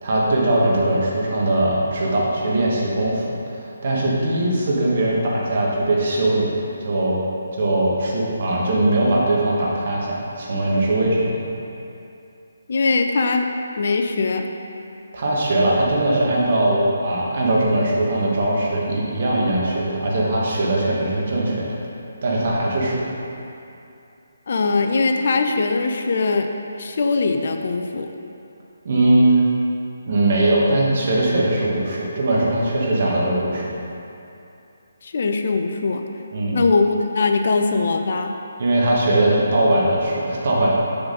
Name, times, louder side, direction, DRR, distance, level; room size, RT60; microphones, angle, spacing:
voice 1, 0.0-3.4 3.8-6.6 6.8-7.2 7.5-11.5 15.1-21.7 22.2-23.0 28.8-29.3 30.1-33.6 36.3-36.6 38.6-40.7, right 1 dB, 50° right, -4 dB, 1.4 m, -20 dB
voice 2, 12.7-13.5 13.8-14.5 24.5-26.5 26.8-28.1 35.0-36.1 36.5-38.3, left 3 dB, 50° left, 5 dB, 0.4 m, -21 dB
6.9 x 3.9 x 5.2 m, 2.7 s
figure-of-eight pair, 145°, 0 cm